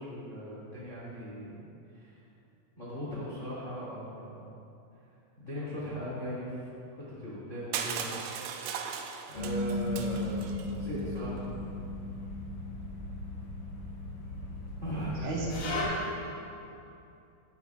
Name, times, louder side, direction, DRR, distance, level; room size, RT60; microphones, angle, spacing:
voice 1, 0.0-2.2 2.8-4.4 5.4-6.7 7.1-8.1 9.3-11.5 14.8-15.3, equal, 75° left, -8 dB, 0.7 m, -38 dB
Crushing, 7.7-10.7, right 7 dB, 85° right, 2.5 m, -37 dB
sound 1, 9.3-15.8, left 2 dB, 55° left, 3.0 m, -36 dB
voice 2, 15.2-16.4, right 3 dB, 65° right, -7 dB, 4.5 m, -36 dB
16.0 x 11.5 x 2.4 m, 2.7 s
omnidirectional pair, 5.9 m